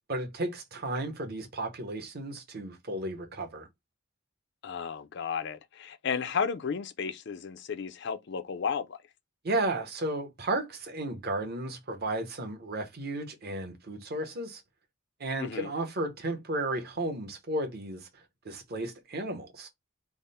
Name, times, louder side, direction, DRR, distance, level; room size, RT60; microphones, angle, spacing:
voice 1, 0.1-3.7 9.4-14.6 15.2-18.1 18.4-19.7, right 2 dB, 45° right, 0.8 m, -33 dB
voice 2, 4.6-9.0 15.4-15.7, left 6 dB, 50° left, 0.4 m, -33 dB
3.6 x 2.0 x 4.0 m
head